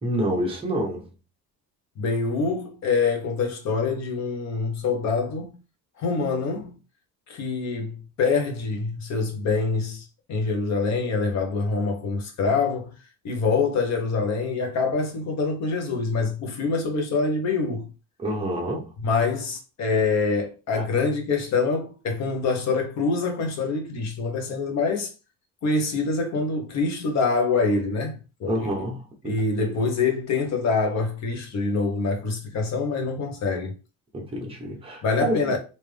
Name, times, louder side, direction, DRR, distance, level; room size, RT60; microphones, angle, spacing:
voice 1, 0.0-1.1 18.2-18.9 28.5-29.3 29.7-29.8 34.1-35.6, right 1 dB, 15° right, 1.0 m, -28 dB
voice 2, 2.0-5.6 6.0-6.7 7.3-12.9 13.2-17.9 19.0-25.1 25.6-28.7 29.2-33.7 35.0-35.6, left 4 dB, 50° left, 1.1 m, -25 dB
3.5 x 2.8 x 3.3 m
cardioid pair, 160°, 35 cm